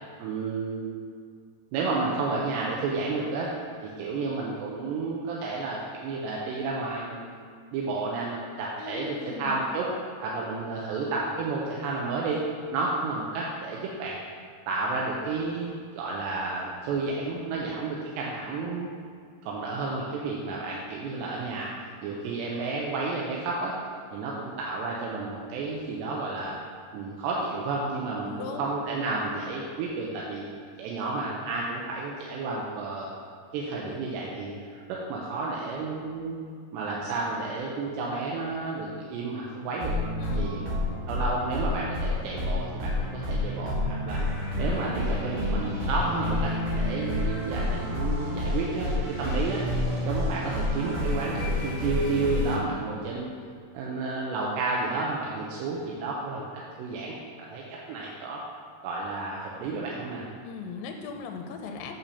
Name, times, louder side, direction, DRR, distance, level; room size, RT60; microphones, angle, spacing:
voice 1, 0.2-1.0 1.7-3.5 3.8-7.3 7.7-9.9 10.2-12.4 12.7-14.2 14.7-18.9 19.4-21.7 22.0-23.7 24.1-26.6 26.9-30.5 30.8-33.1 33.5-36.4 36.7-39.9 40.4-40.6 41.1-44.2 44.6-49.6 50.0-53.3 53.7-56.5 56.8-57.6 57.9-58.4 58.8-60.3, right 3 dB, 80° right, -3 dB, 2.8 m, -31 dB
voice 2, 8.8-9.6 28.2-28.7 40.2-40.6 60.4-62.0, left 5 dB, 85° left, 4 dB, 2.9 m, -38 dB
sound 1, 39.8-52.6, left 1 dB, 60° right, 3.8 m, -29 dB
8.8 x 4.2 x 6.8 m, 2.1 s
omnidirectional pair, 5.2 m